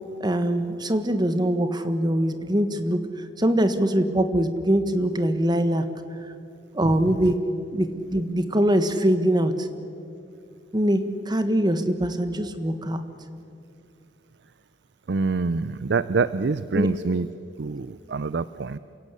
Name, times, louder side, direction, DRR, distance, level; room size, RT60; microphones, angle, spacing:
voice 1, 0.2-3.0 3.4-5.8 6.7-7.4 7.7-9.7 10.7-13.0 16.7-16.9, right 1 dB, 25° right, 9 dB, 1.5 m, -23 dB
voice 2, 15.1-17.3 17.6-18.8, right 4 dB, 65° right, 15 dB, 0.5 m, -25 dB
28.5 x 17.0 x 8.4 m, 2.5 s
head